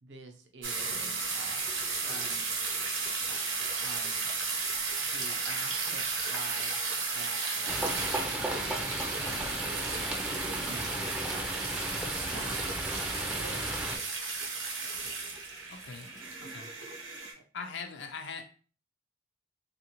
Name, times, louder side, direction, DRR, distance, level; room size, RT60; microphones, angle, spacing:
voice 1, 0.0-2.4 3.3-3.4 3.8-4.5 5.1-9.0 9.2-11.0 12.3-12.7 13.3-13.7 17.4-17.5, right 3 dB, 65° right, 4 dB, 0.6 m, -48 dB
sound 1, 0.6-17.3, right 4 dB, 85° right, 1.0 m, -34 dB
sound 2, 7.7-14.0, right 1 dB, 5° right, 0.4 m, -35 dB
voice 2, 15.7-16.1 16.4-16.7 17.5-18.4, left 5 dB, 65° left, 6 dB, 0.4 m, -41 dB
3.3 x 2.5 x 2.9 m, 0.39 s
head